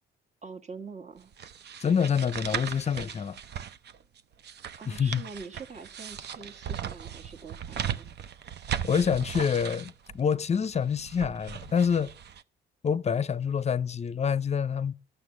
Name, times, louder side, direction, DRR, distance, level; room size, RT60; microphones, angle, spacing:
voice 1, 0.4-1.3 4.8-8.1, right 4 dB, 35° right, 1.5 m, -44 dB
sound 1, 1.3-12.4, right 9 dB, 60° right, 0.7 m, -38 dB
voice 2, 1.8-3.4 4.9-5.2 8.8-12.1 12.8-14.9, left 7 dB, 35° left, 0.6 m, -27 dB
12.0 x 6.9 x 9.7 m
cardioid pair, 90°, 20 cm